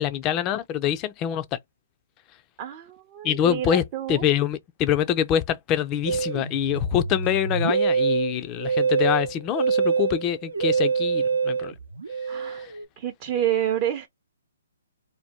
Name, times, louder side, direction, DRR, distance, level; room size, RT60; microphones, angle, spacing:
voice 1, 0.0-1.6 3.2-3.8 4.1-11.7 12.4-12.7, left 10 dB, 25° left, 0.4 m, -25 dB
voice 2, 2.6-4.2 12.3-12.7 13.0-14.1, right 11 dB, 30° right, 0.5 m, -28 dB
Musical instrument, 6.1-12.8, right 5 dB, 85° right, 0.7 m, -25 dB
2.6 x 2.2 x 3.3 m
hypercardioid pair, 145°, 0 cm